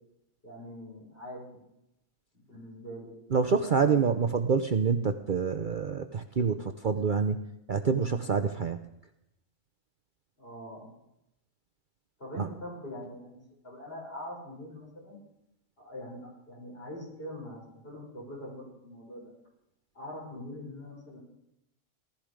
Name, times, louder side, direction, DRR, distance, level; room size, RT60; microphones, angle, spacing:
voice 1, 0.4-1.6 2.5-3.2 3.5-4.1 10.4-10.9 12.2-15.2 15.8-19.3 19.9-21.2, left 1 dB, 45° left, -3 dB, 6.7 m, -43 dB
voice 2, 3.3-7.4 7.7-8.8 12.4-12.5, right 5 dB, 45° right, 8 dB, 0.8 m, -27 dB
18.5 x 13.0 x 5.1 m, 0.84 s
omnidirectional pair, 1.3 m